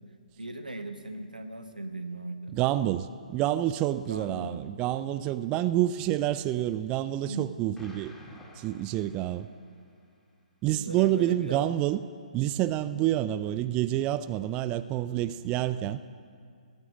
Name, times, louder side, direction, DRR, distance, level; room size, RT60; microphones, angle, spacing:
voice 1, 0.4-2.5 4.0-4.7 7.3-7.6 10.6-11.7, right 2 dB, 90° right, 6 dB, 1.5 m, -38 dB
voice 2, 2.5-8.1 8.6-9.5 10.6-12.0 12.3-16.0, right 13 dB, 20° right, 13 dB, 0.4 m, -28 dB
Explosion, 7.7-9.9, left 1 dB, 10° left, 2.0 m, -51 dB
17.0 x 9.0 x 9.0 m, 2.2 s
figure-of-eight pair, 130°, 4 cm